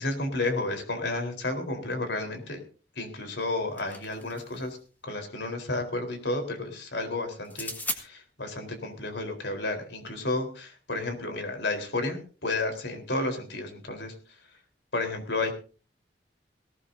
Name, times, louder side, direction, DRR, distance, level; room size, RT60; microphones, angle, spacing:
voice 1, 0.0-2.6 3.0-4.8 5.0-14.1 14.9-15.5, left 2 dB, 80° left, 5 dB, 4.0 m, -32 dB
sound 1, 3.4-4.7 7.4-8.0, left 2 dB, 10° left, 1.7 m, -36 dB
19.5 x 17.5 x 2.7 m, 0.37 s
head